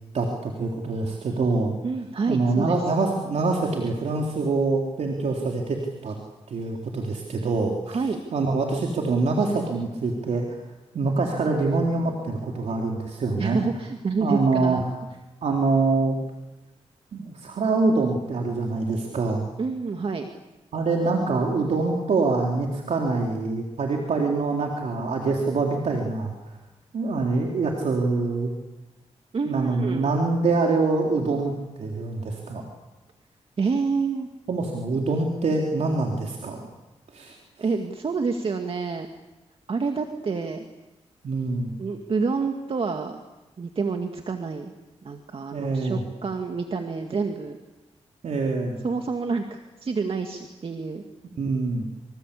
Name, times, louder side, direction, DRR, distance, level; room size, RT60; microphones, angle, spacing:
voice 1, 0.1-1.7 2.3-6.1 6.5-8.0 8.3-10.6 10.9-13.6 14.2-14.8 15.4-16.2 17.1-19.4 20.7-26.5 26.9-28.5 29.5-31.5 31.8-32.6 34.5-36.6 37.1-37.4 41.2-41.8 45.5-46.0 48.2-48.8 51.4-51.9, right 3 dB, 70° right, 0 dB, 3.8 m, -25 dB
voice 2, 1.8-2.8 7.9-8.2 13.4-14.8 19.6-20.3 29.3-30.1 33.6-34.3 37.6-39.1 39.7-40.6 41.8-43.2 43.6-44.7 45.0-47.6 48.8-51.0, right 4 dB, 50° right, 4 dB, 2.2 m, -28 dB
27.0 x 25.5 x 8.5 m, 1.1 s
cardioid pair, 90°, 12 cm